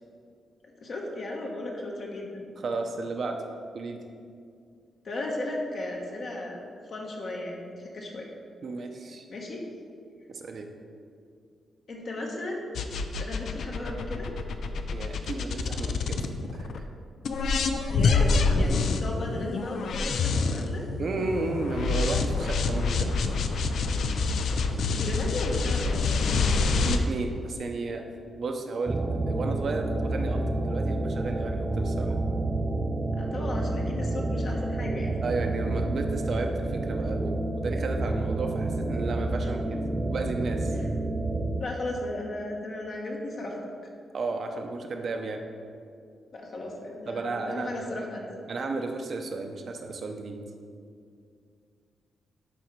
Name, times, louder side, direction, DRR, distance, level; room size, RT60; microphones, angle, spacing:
voice 1, 0.8-2.4 5.0-6.6 6.9-8.3 9.3-9.6 11.9-12.6 13.1-14.3 17.9-20.9 24.9-26.2 33.2-35.1 40.7-40.8 41.6-43.7 46.3-48.3, left 2 dB, 50° left, -1 dB, 1.1 m, -35 dB
voice 2, 2.6-3.4 3.7-4.0 8.6-9.3 10.3-10.7 14.9-16.2 16.5-16.9 21.0-23.1 26.8-28.0 28.4-29.0 29.3-32.1 35.2-39.8 40.0-40.7 44.1-45.4 47.1-47.9 48.5-50.4, right 3 dB, 50° right, 4 dB, 0.7 m, -33 dB
sound 1, 12.7-16.8 17.2-27.0, left 4 dB, 65° left, 0.5 m, -27 dB
sound 2, 28.9-41.6, right 2 dB, 20° right, 0.3 m, -29 dB
11.5 x 3.9 x 4.6 m, 2.3 s
cardioid pair, 135°, 0 cm